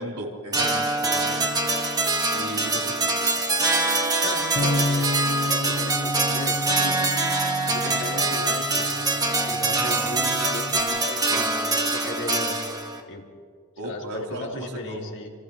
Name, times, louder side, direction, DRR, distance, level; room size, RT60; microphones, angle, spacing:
voice 1, 0.0-1.4 2.3-3.1 13.8-15.1, right 1 dB, 90° right, -2 dB, 4.1 m, -35 dB
sound 1, 0.5-13.0, right 2 dB, 20° right, 1.9 m, -24 dB
voice 2, 4.2-7.1 7.6-8.9 9.2-12.6 13.1-13.3 13.8-15.3, left 1 dB, 60° left, -1 dB, 3.0 m, -37 dB
Bass guitar, 4.6-10.8, left 1 dB, 40° left, 0.9 m, -31 dB
29.5 x 29.0 x 3.3 m, 2.1 s
head